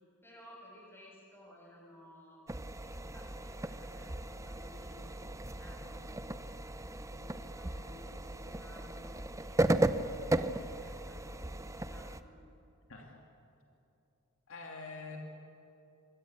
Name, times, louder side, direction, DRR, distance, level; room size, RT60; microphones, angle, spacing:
voice 1, 0.2-2.4 2.8-6.2 7.0-12.4, left 1 dB, 10° left, -2 dB, 7.4 m, -56 dB
sound 1, 2.5-12.2, right 1 dB, 15° right, 0.8 m, -36 dB
voice 2, 14.5-15.2, left 4 dB, 65° left, 1 dB, 2.8 m, -45 dB
25.0 x 24.0 x 8.5 m, 2.8 s
head